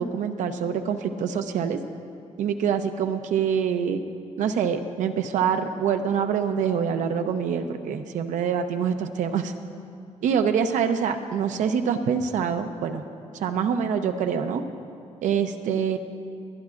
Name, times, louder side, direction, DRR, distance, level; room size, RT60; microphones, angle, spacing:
voice 1, 0.0-1.8 2.4-4.0 4.4-9.5 10.2-13.0 13.3-14.6 15.2-16.0, right 7 dB, 85° right, 7 dB, 0.7 m, -25 dB
23.5 x 10.5 x 2.5 m, 2.6 s
cardioid pair, 135°, 12 cm